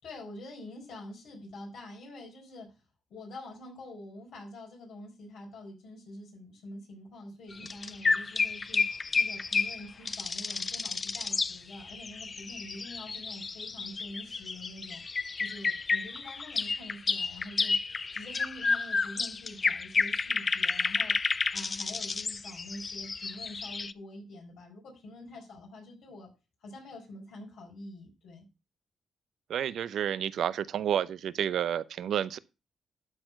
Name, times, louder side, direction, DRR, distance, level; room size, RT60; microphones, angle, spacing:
voice 1, 0.0-2.7 3.1-15.0 15.4-17.8 18.1-21.1 21.5-26.3 26.6-28.4, left 1 dB, 85° left, 4.6 m, -46 dB
sound 1, 7.5-23.9, left 4 dB, 35° left, 0.5 m, -31 dB
voice 2, 29.5-32.4, right 9 dB, 80° right, 0.6 m, -30 dB
12.5 x 4.6 x 5.7 m
cardioid pair, 90°, 0 cm